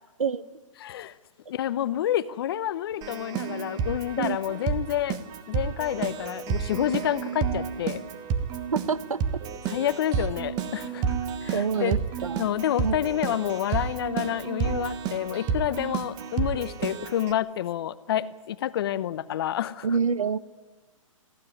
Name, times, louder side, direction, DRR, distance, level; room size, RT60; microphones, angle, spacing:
voice 1, 0.8-1.1 1.5-5.2 5.5-8.0 9.7-11.0 11.4-12.0 12.4-19.9, left 11 dB, 45° left, 15 dB, 0.9 m, -28 dB
Keyboard (musical), 3.0-17.3, right 7 dB, 25° right, 1.3 m, -31 dB
voice 2, 8.7-9.2 11.5-12.4 12.8-13.0 19.8-20.4, right 6 dB, 80° right, 15 dB, 1.1 m, -26 dB
22.0 x 15.0 x 9.8 m, 1.4 s
hypercardioid pair, 135°, 17 cm